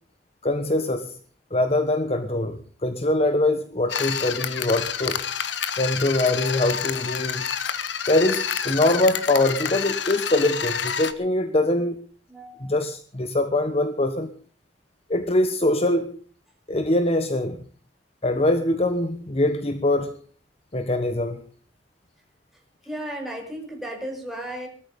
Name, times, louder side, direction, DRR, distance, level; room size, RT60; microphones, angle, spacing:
voice 1, 0.4-1.2 1.5-5.2 5.8-7.4 8.1-12.0 12.6-14.3 15.1-16.2 16.7-17.6 18.2-20.2 20.7-21.4, left 1 dB, 35° left, 1.2 m, -23 dB
sound 1, 3.9-11.1, left 7 dB, 85° left, 1.4 m, -28 dB
voice 2, 12.3-12.7 22.8-24.7, right 1 dB, ahead, 5.7 m, -34 dB
19.5 x 13.5 x 5.3 m
head